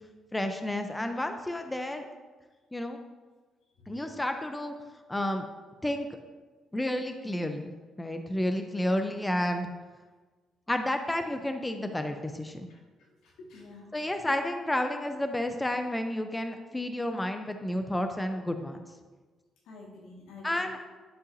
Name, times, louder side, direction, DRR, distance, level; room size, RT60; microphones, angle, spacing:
voice 1, 0.3-2.1 2.7-3.0 3.9-4.8 5.1-5.5 5.8-6.1 6.7-7.7 8.0-9.7 10.7-12.7 13.9-18.8 20.4-20.8, left 1 dB, 10° left, 6 dB, 0.6 m, -31 dB
voice 2, 13.2-14.0 19.7-20.7, left 3 dB, 85° left, -2 dB, 1.8 m, -49 dB
11.0 x 5.4 x 2.7 m, 1.3 s
cardioid pair, 90°, 0 cm